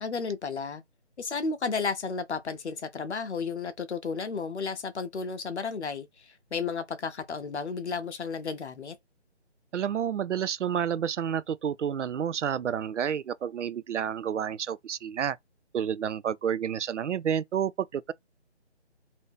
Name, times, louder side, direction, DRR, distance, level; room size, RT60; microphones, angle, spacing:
voice 1, 0.0-0.8 1.2-9.0, left 5 dB, 70° left, 0.8 m, -33 dB
voice 2, 9.7-15.4 15.7-18.1, right 8 dB, 85° right, 0.5 m, -30 dB
2.8 x 2.7 x 3.5 m
figure-of-eight pair, 165°, 35 cm